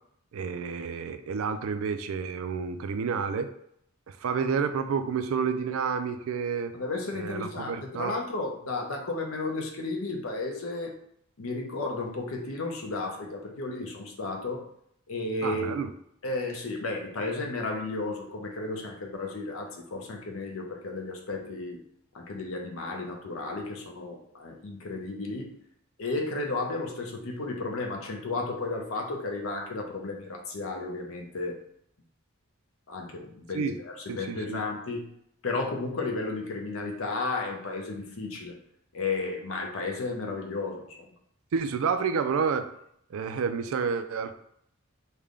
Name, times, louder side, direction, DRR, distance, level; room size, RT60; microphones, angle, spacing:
voice 1, 0.3-3.5 4.1-6.7 7.1-8.1 15.4-15.9 33.5-33.7 34.1-34.6 41.5-42.7 43.1-44.3, right 6 dB, 75° right, 9 dB, 0.3 m, -29 dB
voice 2, 6.7-11.0 11.4-14.6 15.1-15.8 16.2-21.8 22.1-25.5 26.0-31.6 32.9-35.0 35.4-38.6 38.9-41.1, left 3 dB, 75° left, 1 dB, 0.6 m, -33 dB
3.3 x 2.2 x 3.7 m, 0.71 s
head